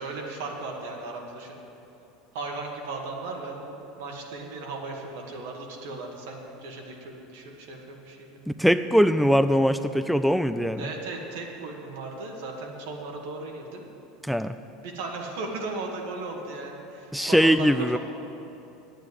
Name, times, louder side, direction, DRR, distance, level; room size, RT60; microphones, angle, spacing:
voice 1, 0.0-1.6 2.3-8.3 10.8-13.8 14.8-17.7, right 3 dB, 80° right, 1 dB, 1.9 m, -36 dB
voice 2, 8.6-10.9 14.2-14.5 17.1-18.0, equal, ahead, 10 dB, 0.3 m, -21 dB
9.2 x 8.9 x 8.1 m, 2.9 s
supercardioid pair, 125°, 0 cm